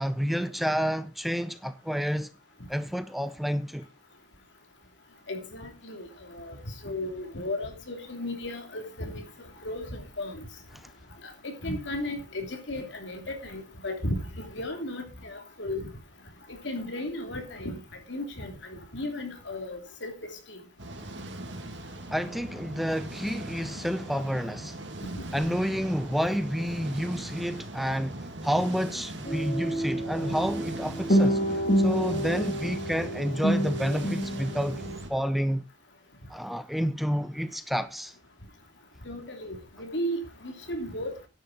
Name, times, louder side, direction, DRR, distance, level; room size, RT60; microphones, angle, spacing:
voice 1, 0.0-2.3 2.7-3.9 10.7-10.9 22.1-24.8 25.3-34.8 35.1-35.6 36.3-38.2, equal, ahead, 0.5 m, -29 dB
voice 2, 5.3-9.2 9.6-10.4 11.2-15.9 16.5-17.8 18.1-20.1 20.5-20.6 25.1-25.2 39.0-41.1, left 1 dB, 75° left, 2.9 m, -35 dB
sound 1, 20.8-35.1, right 1 dB, 80° right, 2.3 m, -40 dB
sound 2, 29.3-35.0, equal, 45° left, 2.3 m, -28 dB
10.5 x 9.8 x 4.1 m
head